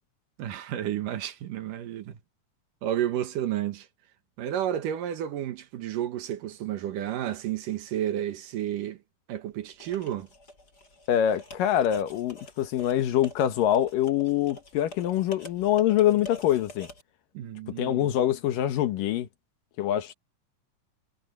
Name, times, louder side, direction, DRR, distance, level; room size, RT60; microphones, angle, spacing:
voice 1, 0.4-2.2 2.8-3.9 4.4-9.0 9.3-10.3 17.3-18.2, right 11 dB, 75° right, 2.9 m, -31 dB
sound 1, 9.8-17.0, left 1 dB, 25° left, 7.5 m, -47 dB
voice 2, 11.1-16.9 17.8-19.3 19.8-20.1, left 11 dB, 75° left, 2.9 m, -25 dB
omnidirectional pair, 3.9 m